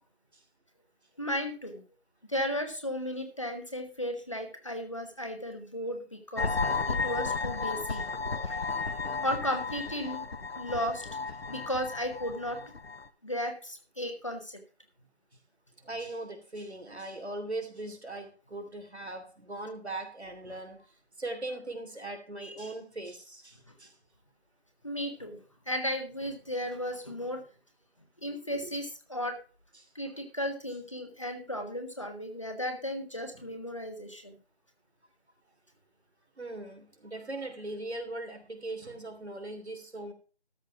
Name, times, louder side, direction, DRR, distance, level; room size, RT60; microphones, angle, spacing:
voice 1, 1.2-1.8 2.3-6.6 6.9-8.0 8.5-8.6 9.2-10.2 10.5-11.1 11.5-12.6 13.2-14.6 22.4-22.7 23.7-23.8 24.8-25.4 25.7-27.4 28.2-29.4 29.9-34.4, equal, 30° left, 6 dB, 1.3 m, -35 dB
sound 1, 6.4-13.1, left 4 dB, 70° left, 1.1 m, -33 dB
voice 2, 15.8-20.9 21.2-23.9 28.5-28.7 33.3-33.5 36.4-40.1, right 2 dB, 85° right, 6 dB, 3.1 m, -40 dB
13.0 x 5.5 x 5.8 m, 0.36 s
figure-of-eight pair, 180°, 32 cm